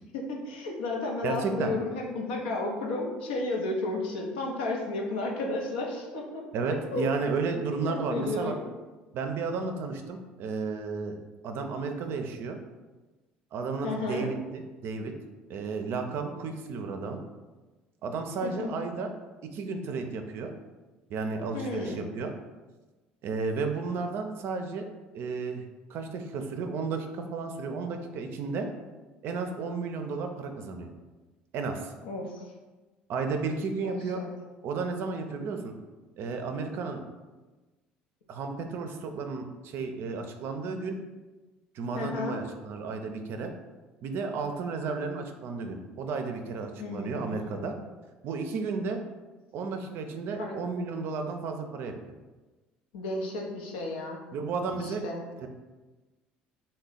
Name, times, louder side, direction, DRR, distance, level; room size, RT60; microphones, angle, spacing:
voice 1, 0.1-6.4 6.7-7.1 7.6-8.6 13.8-14.3 18.4-18.9 21.5-22.1 32.0-32.4 33.8-34.3 41.9-42.4 46.8-47.7 50.4-50.6 52.9-54.2 54.8-55.2, left 2 dB, 80° left, 0 dB, 0.6 m, -33 dB
voice 2, 1.2-1.7 6.5-8.5 9.1-11.1 11.4-12.6 13.5-15.1 15.5-17.2 18.0-19.1 19.4-20.5 21.1-22.3 23.2-24.9 25.1-28.7 29.2-30.9 31.5-31.9 33.1-34.2 34.6-35.7 36.2-37.0 38.3-41.0 41.7-43.5 44.0-47.8 48.2-49.0 49.5-51.9 54.3-55.1 55.4-55.5, right 4 dB, 60° right, 5 dB, 0.4 m, -33 dB
3.3 x 2.2 x 3.7 m, 1.2 s
hypercardioid pair, 65°, 5 cm